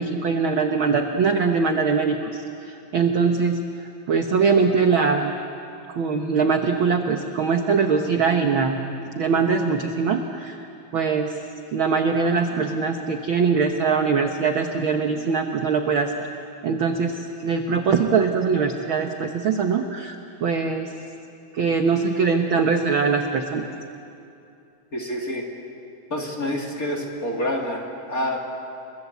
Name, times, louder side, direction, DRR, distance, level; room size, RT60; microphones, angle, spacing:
voice 1, 0.0-3.6 4.1-5.3 5.9-8.8 9.2-10.7 10.9-11.3 11.7-16.3 16.6-20.9 21.5-23.7, right 5 dB, 60° right, 4 dB, 1.3 m, -22 dB
voice 2, 24.9-25.4 26.1-28.4, left 1 dB, 25° left, 0 dB, 2.8 m, -27 dB
30.0 x 23.0 x 8.3 m, 2.7 s
omnidirectional pair, 3.8 m